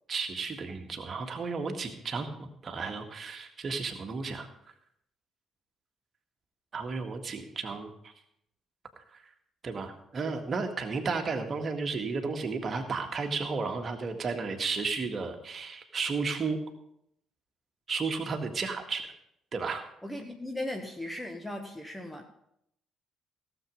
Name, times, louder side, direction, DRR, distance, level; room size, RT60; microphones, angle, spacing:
voice 1, 0.1-4.5 6.7-8.1 9.0-9.2 9.6-16.6 17.9-19.1 19.5-19.8, right 4 dB, 40° right, 5 dB, 1.7 m, -33 dB
voice 2, 20.0-22.3, left 1 dB, 5° left, 4 dB, 1.3 m, -37 dB
16.5 x 7.5 x 5.3 m, 0.74 s
figure-of-eight pair, 45°, 0 cm